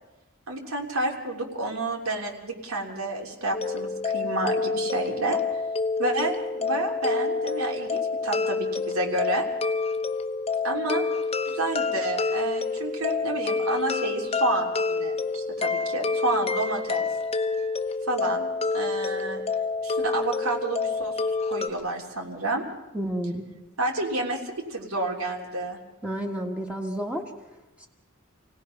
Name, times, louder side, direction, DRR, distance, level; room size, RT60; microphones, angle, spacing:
voice 1, 0.5-5.4 6.0-9.5 10.6-11.0 11.4-17.1 18.1-18.5 18.7-19.4 19.8-22.6 23.8-25.8, right 2 dB, 85° right, 0 dB, 3.2 m, -30 dB
sound 1, 3.5-21.7, left 4 dB, 30° left, 0.9 m, -28 dB
voice 2, 22.9-23.5 26.0-27.2 27.8-27.9, right 1 dB, 5° right, 1 dB, 1.7 m, -30 dB
28.0 x 17.5 x 5.8 m, 1.0 s
head